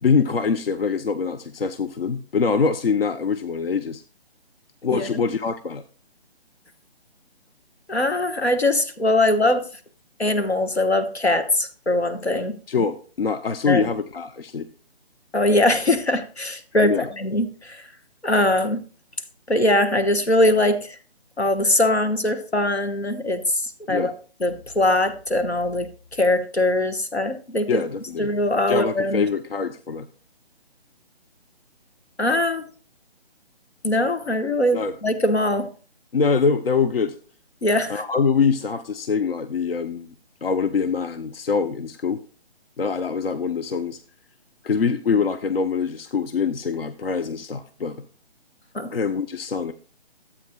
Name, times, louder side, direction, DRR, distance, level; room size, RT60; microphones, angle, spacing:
voice 1, 0.0-4.0 4.8-5.8 12.7-14.7 16.8-17.1 23.9-24.1 27.7-28.3 28.7-30.1 34.7-34.9 36.1-37.1 37.9-40.1 40.4-42.2 42.8-44.0 44.6-48.0 48.9-49.7, left 5 dB, 65° left, 10 dB, 0.6 m, -24 dB
voice 2, 7.9-9.6 10.2-12.6 13.7-13.8 15.3-17.8 18.2-18.8 19.5-21.0 21.4-24.1 24.4-27.8 28.2-29.2 32.2-32.7 33.8-35.7 37.6-38.0 48.7-48.9, left 1 dB, 85° left, 8 dB, 1.2 m, -21 dB
12.5 x 8.4 x 2.2 m, 0.38 s
figure-of-eight pair, 145°, 32 cm